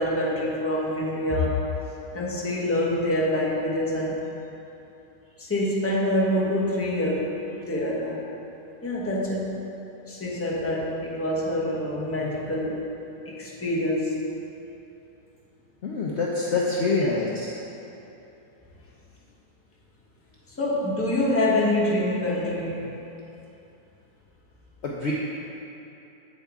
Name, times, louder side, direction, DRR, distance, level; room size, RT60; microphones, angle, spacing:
voice 1, 0.0-1.7 2.1-4.2 5.4-8.3 8.8-9.6 10.1-12.9 13.2-14.2 16.5-16.6 17.0-17.2 20.6-23.0, left 1 dB, 10° left, -5 dB, 0.9 m, -26 dB
voice 2, 15.8-17.5 24.8-25.1, left 3 dB, 55° left, -4 dB, 0.8 m, -25 dB
8.2 x 8.1 x 3.5 m, 2.9 s
omnidirectional pair, 1.7 m